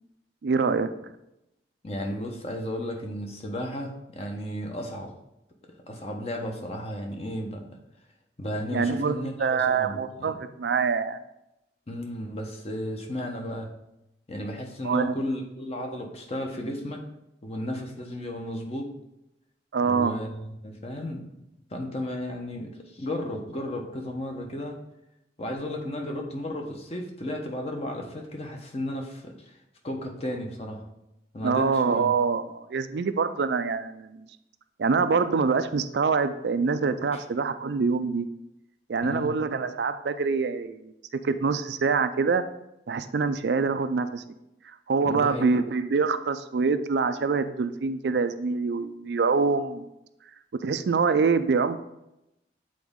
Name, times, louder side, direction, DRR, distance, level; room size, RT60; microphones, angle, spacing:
voice 1, 0.4-0.9 8.7-11.2 14.8-15.1 19.7-20.1 31.4-34.2 34.8-38.3 38.9-40.9 41.2-42.4 42.9-44.2 44.9-49.8 50.6-51.8, right 5 dB, 75° right, 10 dB, 0.4 m, -25 dB
voice 2, 1.8-5.1 5.9-7.7 8.4-10.3 11.9-13.7 14.3-17.0 17.4-18.9 19.8-21.2 21.7-24.8 25.4-29.5 29.8-30.8 31.3-32.1 37.1-37.2 39.0-39.3 45.0-45.5, left 1 dB, 35° left, 2 dB, 0.9 m, -34 dB
7.7 x 4.1 x 3.6 m, 0.87 s
head